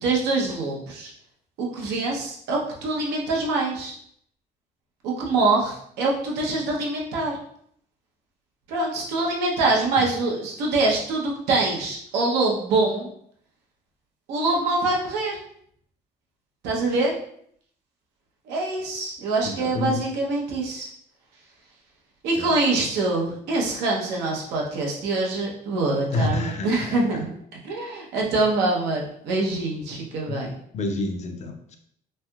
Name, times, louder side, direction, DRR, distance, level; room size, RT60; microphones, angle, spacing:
voice 1, 0.0-1.1 1.6-3.9 5.0-7.4 8.7-13.1 14.3-15.4 16.6-17.2 18.5-20.9 22.2-27.3 27.6-30.5, right 3 dB, 90° right, -2 dB, 0.8 m, -24 dB
voice 2, 19.4-20.0 22.4-22.5 26.1-27.0 30.3-30.4 30.7-31.8, left 2 dB, 40° left, 5 dB, 0.5 m, -28 dB
3.2 x 2.7 x 2.3 m, 0.66 s
cardioid pair, 110°, 17 cm